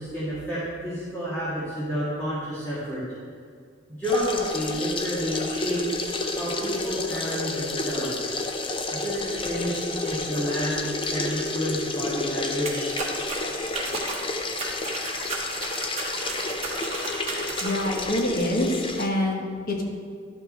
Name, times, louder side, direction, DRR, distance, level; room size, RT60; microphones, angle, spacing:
voice 1, 0.0-3.0 3.9-6.0 6.3-8.3 8.9-12.9, equal, 10° left, -12 dB, 2.1 m, -30 dB
sound 1, 4.0-19.1, left 2 dB, 30° left, 0.6 m, -30 dB
sound 2, 12.7-18.0, right 3 dB, 35° right, 1.4 m, -34 dB
voice 2, 17.6-19.8, left 1 dB, 50° left, 0 dB, 1.3 m, -26 dB
11.5 x 6.0 x 4.2 m, 2.1 s
head